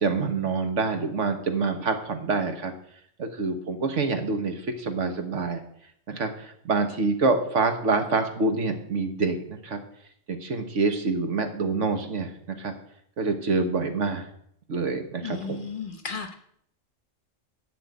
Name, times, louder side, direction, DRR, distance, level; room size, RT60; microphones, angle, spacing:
voice 1, 0.0-2.7 3.2-5.6 6.1-9.8 10.3-12.7 13.2-14.3 14.7-15.7, right 4 dB, 70° right, 6 dB, 1.6 m, -26 dB
voice 2, 15.2-16.3, left 5 dB, 45° left, 6 dB, 1.0 m, -34 dB
11.5 x 5.2 x 8.3 m, 0.68 s
omnidirectional pair, 1.3 m